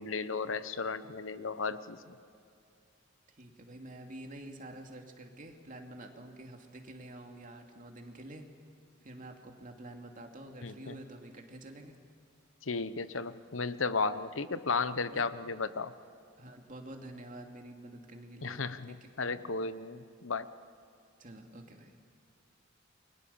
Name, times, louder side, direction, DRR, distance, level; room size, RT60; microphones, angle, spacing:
voice 1, 0.0-2.2 10.6-11.0 12.6-15.9 18.4-20.5, left 4 dB, 85° left, 13 dB, 1.0 m, -34 dB
voice 2, 3.3-8.4 9.0-12.0 15.0-15.2 16.4-18.6 18.9-19.3 21.2-21.9, right 1 dB, 45° right, 3 dB, 2.7 m, -48 dB
29.0 x 23.5 x 7.1 m, 2.5 s
head